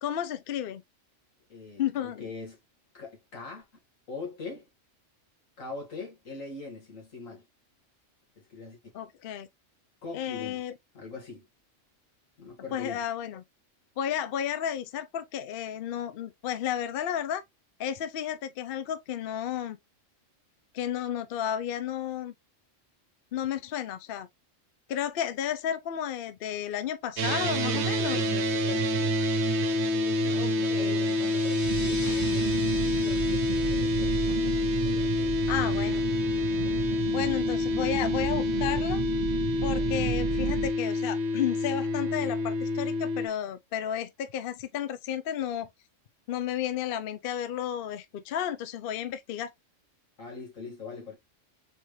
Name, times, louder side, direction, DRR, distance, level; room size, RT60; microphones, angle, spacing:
voice 1, 0.0-0.8 1.8-2.3 8.9-9.5 10.1-10.7 12.7-13.4 14.0-17.4 17.8-19.8 20.7-22.3 23.3-24.3 24.9-28.3 30.3-31.0 35.5-36.0 37.1-39.0 39.6-45.7 46.3-49.5, left 10 dB, 60° left, 0.7 m, -32 dB
voice 2, 1.5-2.6 2.9-3.7 4.1-4.7 5.6-7.5 8.4-8.8 10.0-10.6 10.9-11.5 12.4-13.0 27.3-29.1 30.0-34.5 34.8-36.0 50.2-51.2, left 4 dB, 90° left, 2.3 m, -42 dB
sound 1, 27.2-43.3, left 2 dB, 65° right, 1.0 m, -27 dB
sound 2, 30.2-36.5, left 2 dB, 15° left, 0.7 m, -46 dB
sound 3, 31.6-40.7, right 9 dB, 45° right, 0.6 m, -33 dB
4.3 x 3.7 x 3.1 m
omnidirectional pair, 1.3 m